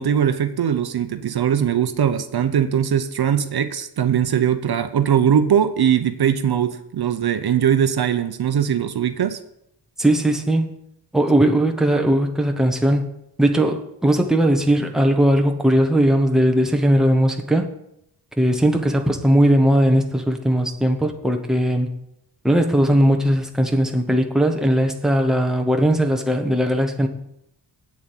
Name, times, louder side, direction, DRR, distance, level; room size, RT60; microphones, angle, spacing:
voice 1, 0.0-9.4, right 9 dB, 65° right, 10 dB, 0.8 m, -20 dB
voice 2, 10.0-10.8 11.1-13.1 13.4-17.7 18.4-21.9 22.4-27.1, right 1 dB, ahead, 3 dB, 1.0 m, -18 dB
8.6 x 7.2 x 7.6 m, 0.78 s
wide cardioid pair, 160°, 42 cm